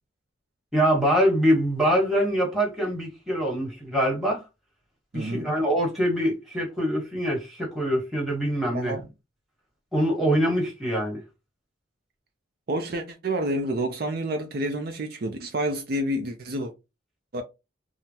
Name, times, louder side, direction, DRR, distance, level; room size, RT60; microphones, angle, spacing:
voice 1, 0.7-4.4 5.1-8.9 9.9-11.2, equal, ahead, 1.2 m, -24 dB
voice 2, 5.1-5.5 8.7-9.1 12.7-16.7 17.3-17.4, right 1 dB, 50° right, 0.5 m, -29 dB
3.6 x 2.0 x 2.7 m
head